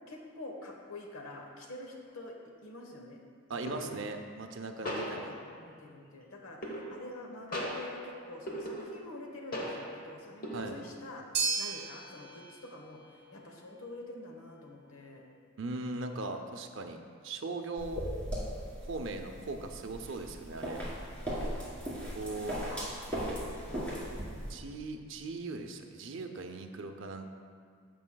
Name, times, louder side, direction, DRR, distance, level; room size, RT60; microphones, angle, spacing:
voice 1, 0.1-2.3 2.6-3.2 3.5-4.0 4.8-15.2 21.3-21.8 22.4-22.7 23.5-23.9 24.3-24.5, left 2 dB, 80° left, 1 dB, 1.1 m, -47 dB
sound 1, 2.1-2.3 3.7-4.2 4.9-5.8 6.6-7.2 7.5-9.2 9.5-10.1 10.4-11.0, equal, 40° left, 0.9 m, -39 dB
voice 2, 3.5-5.3 10.5-10.9 15.6-18.1 18.8-20.8 22.1-22.6 24.5-27.3, right 3 dB, 60° right, 6 dB, 0.5 m, -39 dB
sound 2, 11.3-19.7, right 4 dB, 30° right, 1.5 m, -41 dB
sound 3, 17.8-24.5, equal, 5° left, 1.8 m, -38 dB
15.0 x 5.4 x 2.3 m, 2.1 s
head